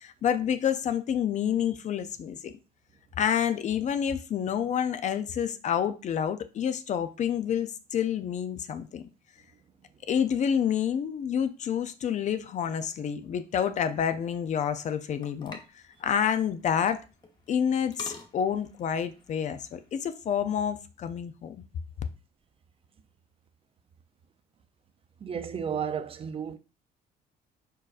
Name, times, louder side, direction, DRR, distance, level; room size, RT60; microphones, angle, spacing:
voice 1, 0.0-2.5 3.2-9.0 10.1-17.0 17.5-21.6, left 8 dB, 45° left, 0.5 m, -28 dB
sound 1, 13.5-19.9, left 3 dB, 25° left, 0.9 m, -50 dB
voice 2, 25.2-26.6, right 7 dB, 35° right, 0.5 m, -33 dB
4.7 x 4.6 x 2.4 m
cardioid pair, 110°, 17 cm